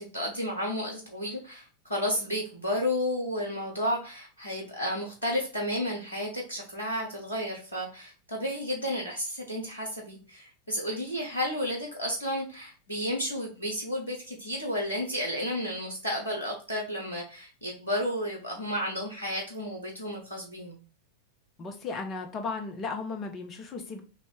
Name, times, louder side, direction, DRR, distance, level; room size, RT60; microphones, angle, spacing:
voice 1, 0.0-20.8, equal, 80° left, 1 dB, 1.0 m, -32 dB
voice 2, 21.6-24.0, left 4 dB, 30° left, 4 dB, 0.8 m, -35 dB
3.3 x 2.9 x 4.3 m, 0.35 s
figure-of-eight pair, 90°, 0 cm